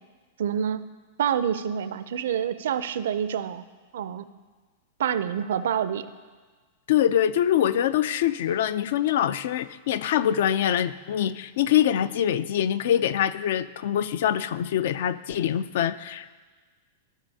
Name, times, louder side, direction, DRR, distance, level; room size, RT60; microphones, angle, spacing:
voice 1, 0.4-0.8 1.2-3.6 3.9-4.3 5.0-6.1, right 8 dB, 80° right, 13 dB, 0.4 m, -27 dB
voice 2, 6.9-16.3, left 10 dB, 65° left, 16 dB, 0.3 m, -24 dB
14.5 x 5.1 x 2.8 m, 1.4 s
supercardioid pair, 150°, 0 cm